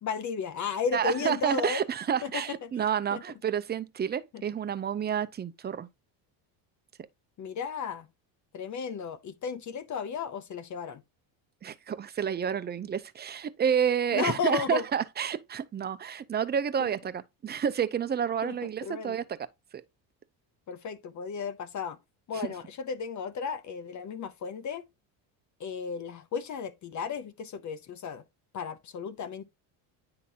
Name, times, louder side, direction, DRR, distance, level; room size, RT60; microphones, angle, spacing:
voice 1, 0.0-1.9 2.2-2.7 3.1-3.2 4.3-4.4 7.4-8.1 8.5-11.0 14.1-14.8 16.8-16.9 18.4-19.2 20.7-22.0 22.3-24.8 25.6-28.2 28.5-29.4, left 6 dB, 40° left, 0.7 m, -34 dB
voice 2, 0.9-5.9 11.6-19.4 19.7-19.8, right 8 dB, 20° right, 0.6 m, -29 dB
9.7 x 3.8 x 2.8 m
cardioid pair, 105°, 45 cm